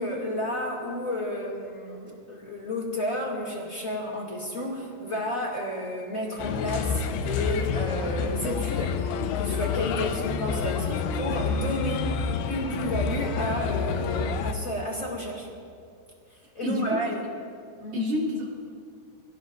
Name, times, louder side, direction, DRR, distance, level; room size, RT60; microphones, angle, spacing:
voice 1, 0.0-9.1 9.3-15.5 16.3-17.2 17.7-17.9, left 1 dB, 25° left, -3 dB, 1.8 m, -31 dB
Bird, 6.4-14.5, left 6 dB, 80° left, 2.4 m, -28 dB
voice 2, 16.6-17.2 17.9-18.5, left 1 dB, 35° right, -4 dB, 3.7 m, -28 dB
28.5 x 18.0 x 2.7 m, 2.4 s
omnidirectional pair, 5.3 m